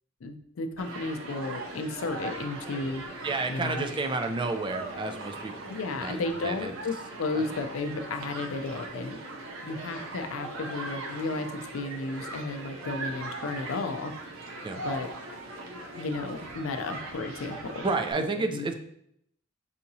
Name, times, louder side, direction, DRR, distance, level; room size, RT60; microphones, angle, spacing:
voice 1, 0.2-3.0 3.5-3.9 5.7-9.2 9.6-11.5 11.7-14.1 14.8-15.1 15.9-17.9 18.2-18.7, left 3 dB, 75° left, 7 dB, 0.4 m, -33 dB
Human group actions, 0.8-18.1, right 2 dB, 90° right, 0.6 m, -40 dB
voice 2, 3.2-6.7 7.3-7.4 14.6-14.8 17.8-18.7, right 3 dB, 25° right, 6 dB, 0.3 m, -31 dB
5.6 x 2.8 x 2.7 m, 0.71 s
head